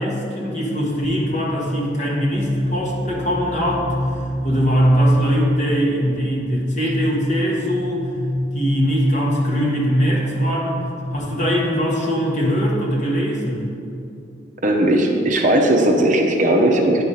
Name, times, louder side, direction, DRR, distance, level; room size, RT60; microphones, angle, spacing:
voice 1, 0.0-3.9 4.1-8.1 8.5-13.7, equal, 40° left, -3 dB, 1.4 m, -21 dB
sound 1, 1.0-11.2, equal, 80° left, 1.1 m, -28 dB
voice 2, 14.6-17.0, right 1 dB, 40° right, 2 dB, 0.6 m, -17 dB
9.8 x 3.5 x 5.5 m, 2.7 s
head